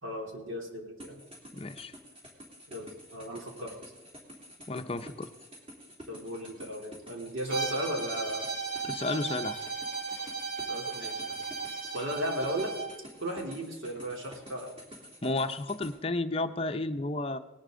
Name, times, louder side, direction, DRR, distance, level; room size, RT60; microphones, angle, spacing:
voice 1, 0.0-1.2 2.7-3.7 6.1-8.5 10.7-11.4 11.9-12.7 13.2-14.8, equal, 80° right, 0 dB, 3.3 m, -36 dB
sound 1, 1.0-15.9, equal, 30° right, 3.3 m, -49 dB
voice 2, 1.5-1.9 4.7-5.3 8.8-9.6 15.2-17.4, left 2 dB, 30° left, 8 dB, 0.6 m, -32 dB
Bowed string instrument, 7.5-13.0, right 4 dB, 45° right, 3.2 m, -36 dB
19.0 x 12.0 x 3.8 m, 1.2 s
head